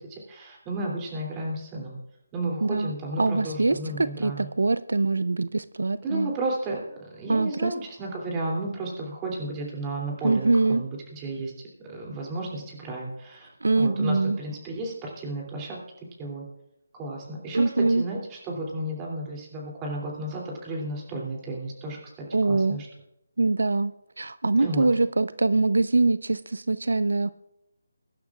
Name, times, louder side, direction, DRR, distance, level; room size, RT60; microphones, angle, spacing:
voice 1, 0.0-2.0 2.3-4.5 6.0-11.5 11.9-13.5 13.8-15.8 16.2-16.4 16.9-22.9 24.6-24.9, right 2 dB, 15° right, -2 dB, 2.8 m, -33 dB
voice 2, 2.6-6.3 7.3-7.7 10.2-10.8 13.6-14.4 17.5-18.0 22.3-22.8 23.4-27.3, right 3 dB, 85° right, 16 dB, 0.4 m, -23 dB
22.5 x 11.5 x 2.4 m, 0.84 s
figure-of-eight pair, 165°, 0 cm